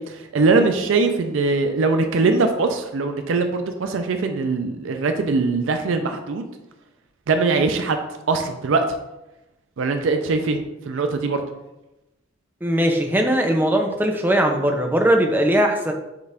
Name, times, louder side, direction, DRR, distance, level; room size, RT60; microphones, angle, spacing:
voice 1, 0.0-6.5 7.3-8.0 8.3-8.8 9.8-11.4, right 3 dB, 65° right, 6 dB, 0.4 m, -21 dB
voice 2, 12.6-15.9, right 1 dB, 10° right, 3 dB, 0.5 m, -19 dB
6.4 x 2.4 x 3.4 m, 0.97 s
head